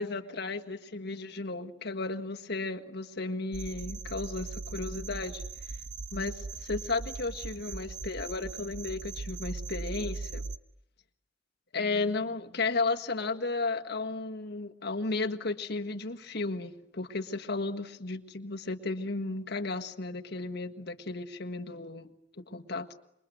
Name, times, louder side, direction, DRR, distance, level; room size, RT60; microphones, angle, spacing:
voice 1, 0.0-5.4 6.1-10.4 11.7-23.0, left 3 dB, 60° left, 5 dB, 1.7 m, -34 dB
sound 1, 3.5-10.6, right 3 dB, 65° right, 1.0 m, -39 dB
27.5 x 23.5 x 9.3 m, 0.79 s
head